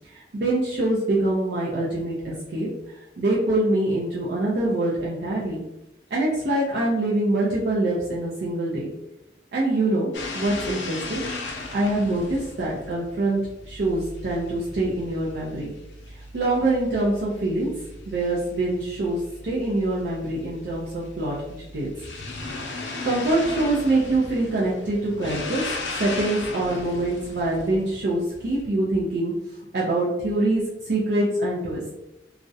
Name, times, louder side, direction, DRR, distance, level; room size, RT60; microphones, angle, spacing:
voice 1, 0.1-2.7 3.2-5.6 6.1-8.9 9.5-11.2 11.7-13.4 13.7-15.7 16.3-17.7 18.1-21.9 22.4-22.6 23.0-25.6 25.9-29.3 29.7-31.8, right 2 dB, 65° right, -6 dB, 0.4 m, -24 dB
sound 1, 10.1-28.6, left 2 dB, 90° left, 0.5 m, -37 dB
2.3 x 2.0 x 2.6 m, 0.91 s
head